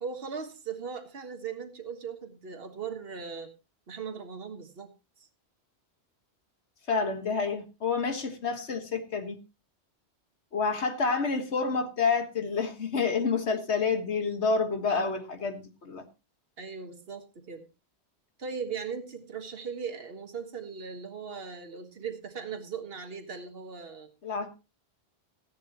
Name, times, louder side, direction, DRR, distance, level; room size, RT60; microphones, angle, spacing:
voice 1, 0.0-3.5 3.9-4.9 5.2-5.3 14.9-15.1 16.6-17.6 18.4-24.1, right 6 dB, 60° right, 7 dB, 1.7 m, -38 dB
voice 2, 6.9-9.4 10.5-16.0 24.2-24.5, left 4 dB, 85° left, 7 dB, 1.8 m, -28 dB
15.5 x 11.0 x 2.9 m, 0.27 s
omnidirectional pair, 1.1 m